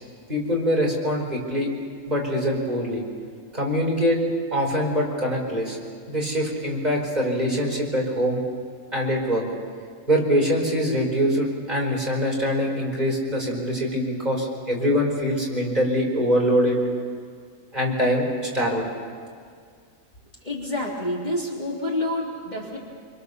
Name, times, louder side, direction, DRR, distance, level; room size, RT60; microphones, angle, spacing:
voice 1, 0.3-1.7 2.1-3.0 3.5-4.2 4.5-5.8 6.1-8.4 8.9-9.4 10.1-16.8 17.7-18.9, equal, 30° right, -2 dB, 5.3 m, -23 dB
voice 2, 20.4-22.8, left 1 dB, 30° left, -4 dB, 3.5 m, -28 dB
27.0 x 25.5 x 7.0 m, 2.1 s
omnidirectional pair, 1.5 m